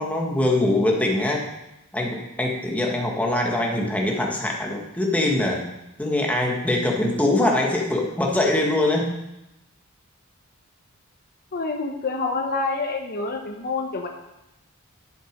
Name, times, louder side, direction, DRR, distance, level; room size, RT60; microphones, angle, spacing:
voice 1, 0.0-1.4 1.9-5.6 6.0-9.1, left 1 dB, 5° left, -1 dB, 1.6 m, -23 dB
voice 2, 11.5-14.1, left 3 dB, 45° left, 2 dB, 0.9 m, -27 dB
11.0 x 6.4 x 5.2 m, 0.91 s
head